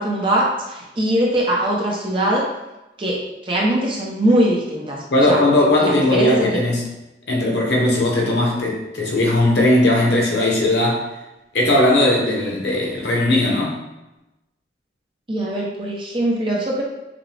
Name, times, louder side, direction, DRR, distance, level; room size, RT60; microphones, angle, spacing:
voice 1, 0.0-2.5 3.0-5.4 5.8-6.6 15.3-16.8, right 1 dB, 30° right, -3 dB, 0.8 m, -21 dB
voice 2, 5.1-6.8 7.3-11.0 11.5-13.8, left 1 dB, 80° left, -2 dB, 1.0 m, -18 dB
5.9 x 2.3 x 3.4 m, 0.99 s
head